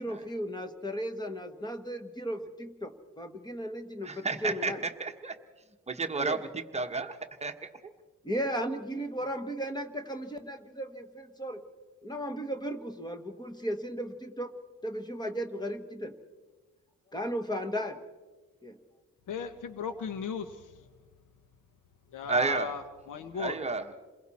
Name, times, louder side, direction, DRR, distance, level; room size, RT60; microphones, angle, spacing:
voice 1, 0.0-4.8 6.2-6.4 8.2-11.6 12.0-14.5 14.8-16.1 17.1-18.0 18.6-18.7, equal, 15° left, 8 dB, 1.3 m, -35 dB
voice 2, 4.0-4.7 5.0-5.3 5.9-6.5 6.7-7.7 22.3-22.7 23.4-24.0, right 4 dB, 20° right, 5 dB, 1.1 m, -31 dB
voice 3, 19.3-20.7 22.1-23.6, left 6 dB, 85° left, 10 dB, 1.0 m, -36 dB
28.5 x 21.5 x 4.2 m, 1.3 s
wide cardioid pair, 155°, 31 cm